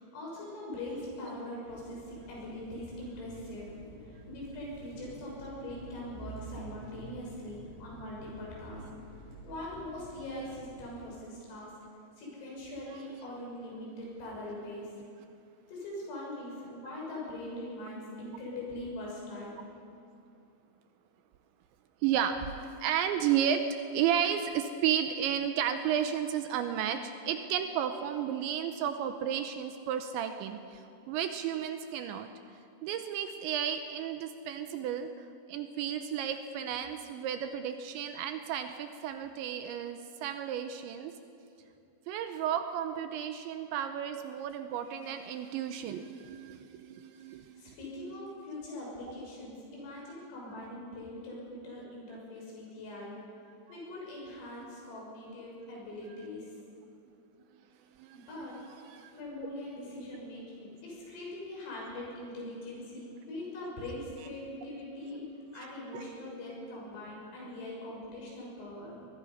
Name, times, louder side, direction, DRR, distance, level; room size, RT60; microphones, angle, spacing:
voice 1, 0.0-3.8 4.1-8.8 9.4-11.7 12.2-14.9 15.7-19.6 47.6-53.2 53.7-56.6 58.1-58.6 59.1-69.1, left 1 dB, 85° left, -3 dB, 9.0 m, -42 dB
sound 1, 1.7-11.0, right 3 dB, 50° right, 5.4 m, -49 dB
voice 2, 22.0-22.4 22.8-23.6 23.9-32.3 32.8-35.1 35.5-41.1 42.1-47.8 58.0-58.5 58.8-59.1 65.6-65.7 65.9-66.0, right 9 dB, 80° right, 7 dB, 2.8 m, -33 dB
23.5 x 20.5 x 5.6 m, 2.6 s
omnidirectional pair, 5.8 m